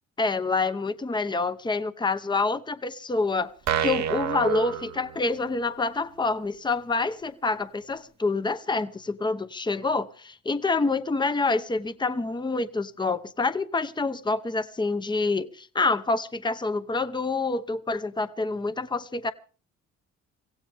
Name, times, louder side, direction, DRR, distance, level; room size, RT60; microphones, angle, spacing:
voice 1, 0.2-3.5 3.8-19.3, left 3 dB, 15° left, 0.9 m, -27 dB
sound 1, 3.7-5.6, right 8 dB, 65° right, 1.0 m, -28 dB
24.5 x 16.0 x 3.5 m
cardioid pair, 90°, 30 cm